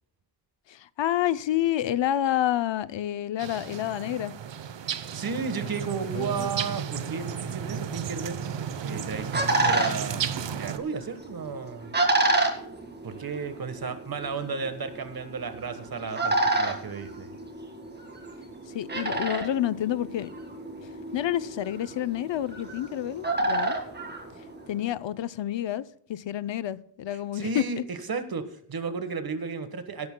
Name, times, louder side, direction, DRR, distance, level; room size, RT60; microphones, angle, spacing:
voice 1, 0.7-4.3 6.1-6.5 18.7-20.3 21.1-23.8 24.7-27.6, left 12 dB, 90° left, 0.6 m, -29 dB
sound 1, 3.4-10.8, right 8 dB, 85° right, 0.9 m, -33 dB
voice 2, 4.8-8.4 8.8-10.2 10.6-11.9 13.0-17.4 27.3-30.1, right 5 dB, 55° right, 1.4 m, -33 dB
sound 2, 8.7-24.9, right 2 dB, 25° right, 1.8 m, -30 dB
16.5 x 11.0 x 2.2 m
wide cardioid pair, 160°, 43 cm